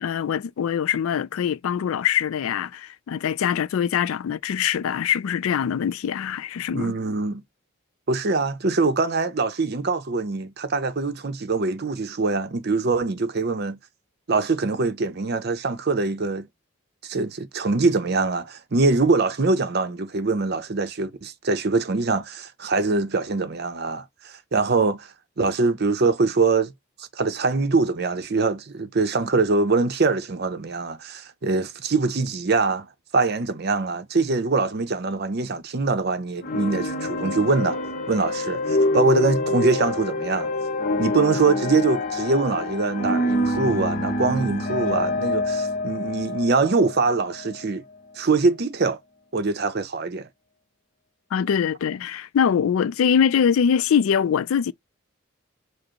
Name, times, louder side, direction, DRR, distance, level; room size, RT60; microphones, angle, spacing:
voice 1, 0.0-6.9 51.3-54.7, left 8 dB, 85° left, 0.3 m, -23 dB
voice 2, 6.7-7.4 8.1-13.8 14.3-16.5 17.0-26.7 27.0-37.8 38.1-40.5 41.0-47.8 48.2-49.0 49.3-50.3, right 3 dB, 50° right, 0.6 m, -23 dB
sound 1, 36.4-47.7, left 2 dB, 45° left, 0.7 m, -26 dB
4.9 x 2.0 x 4.4 m
head